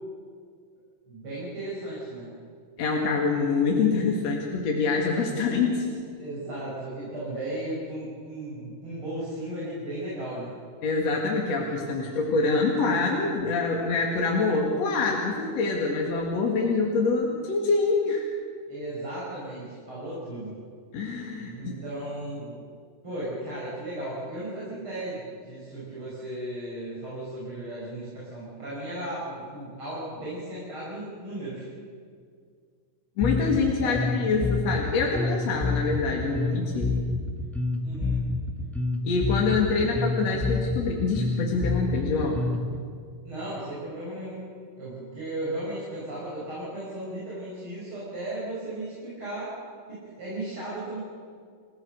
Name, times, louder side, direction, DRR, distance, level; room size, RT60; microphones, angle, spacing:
voice 1, 1.1-2.4 6.2-10.5 12.1-12.2 18.7-20.5 21.0-21.1 21.3-22.6 23.0-31.7 33.8-34.1 37.8-38.2 39.8-39.9 43.2-44.4 44.8-49.5 49.9-51.0, right 1 dB, 40° right, -8 dB, 6.8 m, -35 dB
voice 2, 2.8-5.9 10.8-18.3 20.9-21.8 33.2-36.9 39.0-42.5, left 4 dB, 55° left, -1 dB, 3.0 m, -25 dB
Bass guitar, 33.2-42.8, left 3 dB, ahead, 0.5 m, -28 dB
29.5 x 16.0 x 6.6 m, 2.1 s
omnidirectional pair, 3.7 m